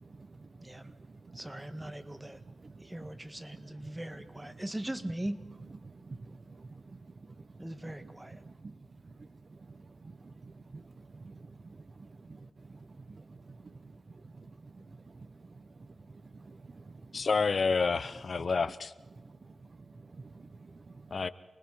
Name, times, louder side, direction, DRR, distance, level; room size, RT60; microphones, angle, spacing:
voice 1, 0.0-0.5 0.7-1.4 2.5-2.9 3.8-3.9 5.8-7.5 7.8-8.1 8.4-8.7 10.0-17.2 19.2-19.7 19.9-21.1, right 3 dB, 50° right, 1.1 m, -50 dB
voice 2, 0.6-0.9 1.3-2.4 2.8-5.4 7.6-8.4, right 1 dB, 15° right, 1.6 m, -40 dB
voice 3, 17.1-18.9 21.1-21.3, left 4 dB, 60° left, 0.7 m, -29 dB
28.0 x 20.0 x 5.5 m
cardioid pair, 65°, 0 cm